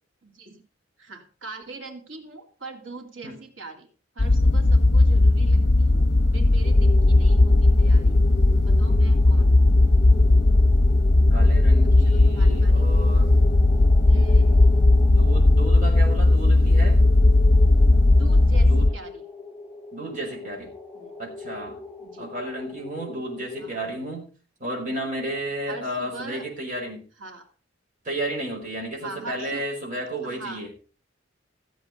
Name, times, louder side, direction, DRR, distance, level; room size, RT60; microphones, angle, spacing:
voice 1, 0.2-0.6 1.0-3.9 4.1-6.0 6.3-8.1 8.6-9.6 12.0-12.9 14.0-14.9 18.1-19.2 20.9-21.1 22.0-22.3 23.6-23.8 25.7-26.5 27.2-27.5 29.0-29.7 30.2-30.6, right 3 dB, 85° right, 4 dB, 2.8 m, -41 dB
sound 1, 4.2-18.9, left 2 dB, 60° left, 0.9 m, -17 dB
sound 2, 6.6-23.7, left 4 dB, 5° left, 1.8 m, -39 dB
voice 2, 11.3-13.3 14.3-14.4 15.0-17.1 18.6-18.9 19.9-20.7 21.2-21.8 22.2-24.3 24.6-27.0 28.0-30.7, right 1 dB, 45° right, -2 dB, 5.3 m, -33 dB
15.5 x 7.9 x 5.3 m, 0.37 s
head